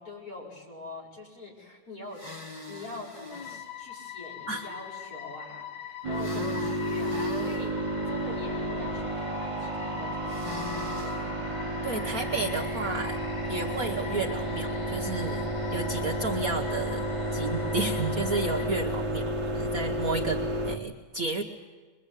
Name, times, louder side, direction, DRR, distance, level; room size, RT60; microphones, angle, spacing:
voice 1, 0.0-2.2 2.7-7.8 8.1-11.7, left 2 dB, 40° left, -5 dB, 5.7 m, -44 dB
sound 1, 2.1-3.6 6.1-7.6 10.3-11.2, left 1 dB, 15° left, 1.6 m, -40 dB
sound 2, 3.3-18.7, left 10 dB, 65° left, 2.3 m, -43 dB
sound 3, 6.0-20.8, right 1 dB, 20° right, 0.9 m, -31 dB
voice 2, 11.8-13.2 13.5-21.4, right 3 dB, 50° right, 1 dB, 1.3 m, -32 dB
22.5 x 22.5 x 8.2 m, 1.4 s
omnidirectional pair, 2.3 m